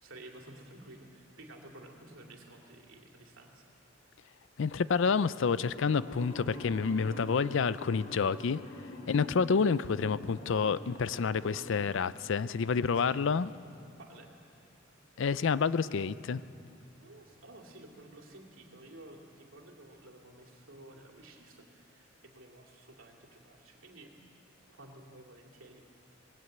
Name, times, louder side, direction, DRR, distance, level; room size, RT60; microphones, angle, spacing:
voice 1, 0.0-3.7 12.9-13.3 14.0-14.3 17.0-24.1 24.7-25.8, right 1 dB, 80° right, 1 dB, 2.7 m, -53 dB
voice 2, 4.6-8.6 9.1-13.5 15.2-16.4, left 5 dB, 65° left, 17 dB, 0.5 m, -29 dB
sound 1, 5.6-11.7, left 1 dB, 40° left, 3.2 m, -46 dB
20.0 x 17.5 x 7.9 m, 2.8 s
head